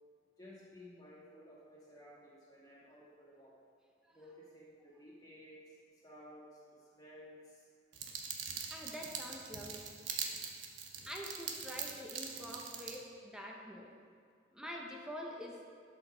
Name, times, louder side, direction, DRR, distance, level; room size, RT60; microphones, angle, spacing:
voice 1, 0.4-3.5 4.1-7.7, equal, 20° left, -7 dB, 2.5 m, -56 dB
sound 1, 7.9-13.0, right 6 dB, 80° right, 1.0 m, -43 dB
voice 2, 8.5-9.8 11.1-13.9 14.5-15.6, equal, 5° right, -1 dB, 0.9 m, -46 dB
12.0 x 6.8 x 3.9 m, 2.2 s
head